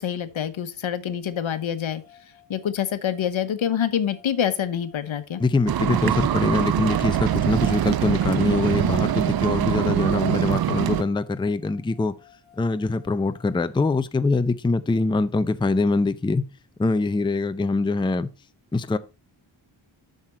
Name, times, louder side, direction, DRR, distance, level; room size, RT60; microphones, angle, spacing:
voice 1, 0.0-2.0 2.5-5.4, left 9 dB, 80° left, 1.0 m, -26 dB
sound 1, 1.2-13.7, left 10 dB, 35° right, 4.4 m, -56 dB
voice 2, 5.4-12.1 12.6-16.5 16.8-18.3 18.7-19.0, left 3 dB, 10° left, 0.5 m, -23 dB
sound 2, 5.7-11.0, right 11 dB, 55° right, 0.5 m, -23 dB
7.2 x 6.7 x 4.2 m
wide cardioid pair, 90°, 47 cm